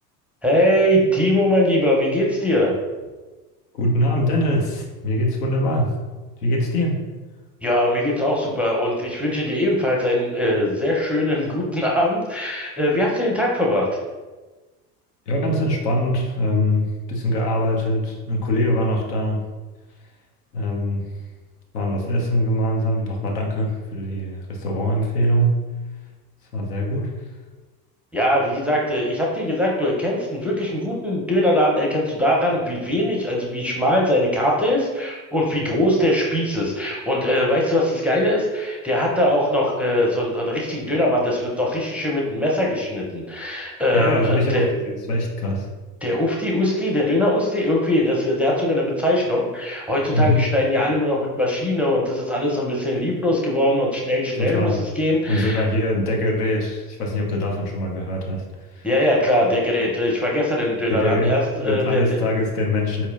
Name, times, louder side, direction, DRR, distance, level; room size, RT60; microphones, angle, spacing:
voice 1, 0.4-2.7 7.6-14.0 28.1-44.7 46.0-55.6 58.8-62.2, left 1 dB, 5° right, -3 dB, 0.5 m, -21 dB
voice 2, 3.7-5.9 6.4-7.0 15.3-19.4 20.5-21.1 21.7-25.6 26.5-27.1 43.9-45.7 50.1-50.4 54.4-54.8 55.3-58.9 60.9-63.1, left 1 dB, 75° left, 0 dB, 0.9 m, -23 dB
4.2 x 2.9 x 2.5 m, 1.2 s
hypercardioid pair, 75°, 47 cm